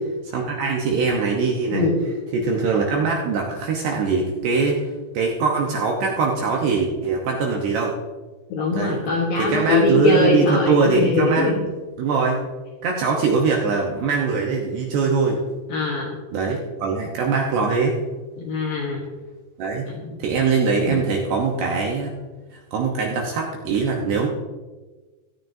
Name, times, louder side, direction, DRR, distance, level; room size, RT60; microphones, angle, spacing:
voice 1, 0.2-1.9 2.3-7.9 8.7-9.0 9.4-11.5 12.0-12.4 12.8-15.4 16.3-18.0 19.6-19.8 20.2-22.1 22.5-24.3, right 4 dB, 75° right, 0 dB, 2.6 m, -22 dB
voice 2, 1.7-2.0 8.5-11.6 15.7-16.1 18.4-19.0 19.9-20.2 20.9-21.0, left 3 dB, 70° left, -2 dB, 2.2 m, -22 dB
17.0 x 12.0 x 2.7 m, 1.3 s
omnidirectional pair, 6.0 m